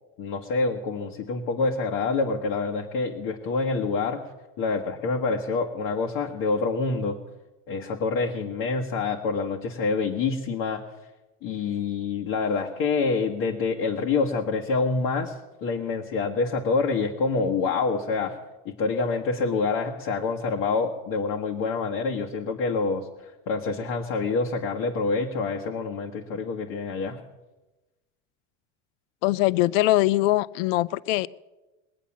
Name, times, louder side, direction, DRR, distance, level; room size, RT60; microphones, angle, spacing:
voice 1, 0.2-4.3 4.6-7.2 7.7-10.8 11.4-18.4 18.6-27.2, left 4 dB, 55° left, 1 dB, 1.6 m, -27 dB
voice 2, 29.2-31.3, left 17 dB, 75° left, 20 dB, 0.5 m, -22 dB
21.0 x 8.3 x 7.3 m, 1.1 s
supercardioid pair, 120°, 38 cm